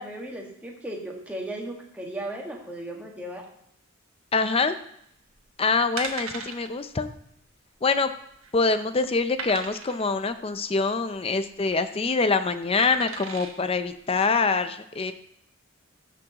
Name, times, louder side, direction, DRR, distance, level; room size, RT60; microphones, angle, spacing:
voice 1, 0.0-3.4, right 1 dB, 5° right, -1 dB, 1.6 m, -36 dB
voice 2, 4.3-4.8 5.6-7.1 7.8-8.1 8.5-15.1, left 4 dB, 30° left, 10 dB, 0.5 m, -25 dB
sound 1, 5.3-5.5 6.0-6.7 7.0-7.2 7.5-7.6 8.1-8.6 9.4-10.1 11.4-11.8 12.8-13.5 14.1-14.2, right 5 dB, 90° right, 1.2 m, -36 dB
14.0 x 6.2 x 2.9 m, 0.72 s
head